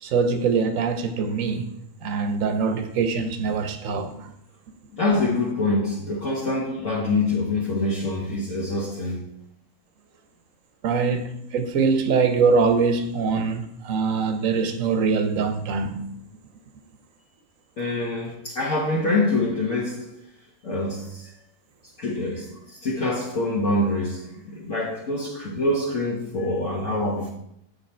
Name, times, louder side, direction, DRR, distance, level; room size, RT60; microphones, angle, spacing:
voice 1, 0.0-1.7 2.0-4.3 10.8-16.1, right 5 dB, 65° right, 1.2 m, -23 dB
voice 2, 4.9-9.3 17.8-20.1 20.6-21.3 22.0-27.3, left 2 dB, 55° left, 1.5 m, -25 dB
7.2 x 5.3 x 4.3 m
omnidirectional pair, 1.6 m